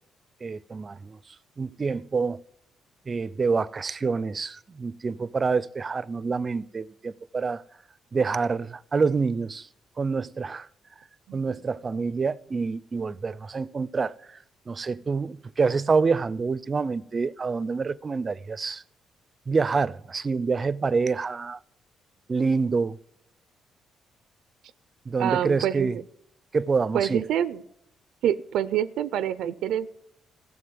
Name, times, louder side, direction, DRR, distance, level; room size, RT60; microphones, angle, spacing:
voice 1, 0.4-1.2 1.6-2.4 3.1-7.6 8.1-9.7 10.0-10.7 11.3-14.4 14.7-18.8 19.5-21.6 22.3-23.0 25.1-26.0 26.5-27.2, right 4 dB, 35° right, 0.5 m, -27 dB
voice 2, 25.2-26.0 26.9-27.6 28.2-29.9, right 10 dB, 80° right, 0.5 m, -26 dB
14.5 x 7.5 x 9.4 m
cardioid pair, 90°, 0 cm